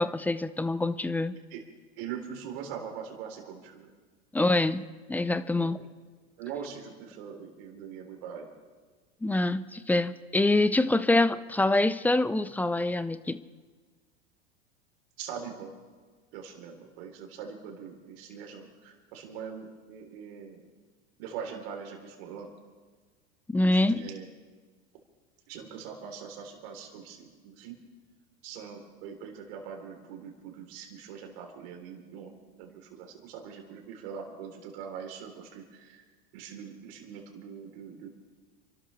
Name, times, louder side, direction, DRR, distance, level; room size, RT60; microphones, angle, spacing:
voice 1, 0.0-1.4 4.3-5.8 9.2-13.4 23.5-24.0, left 2 dB, 5° left, 15 dB, 0.4 m, -25 dB
voice 2, 2.0-3.9 5.5-5.9 6.4-8.5 15.2-15.7 16.3-20.6 21.2-22.5 23.6-24.3 25.5-27.7 28.4-36.0 36.3-38.1, right 7 dB, 65° right, 2 dB, 3.3 m, -42 dB
28.5 x 12.5 x 3.2 m, 1.5 s
hypercardioid pair, 100°, 33 cm